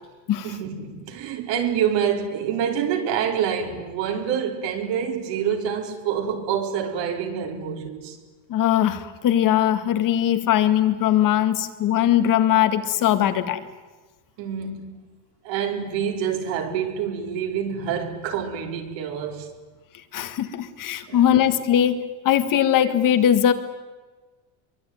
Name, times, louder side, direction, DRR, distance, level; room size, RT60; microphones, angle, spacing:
voice 1, 0.4-8.2 14.4-15.0 15.4-19.5 21.1-21.4, right 8 dB, 65° right, 4.5 m, -27 dB
voice 2, 8.5-13.6 20.1-23.5, left 10 dB, 40° left, 2.0 m, -20 dB
26.0 x 23.5 x 9.4 m
cardioid pair, 165°, 47 cm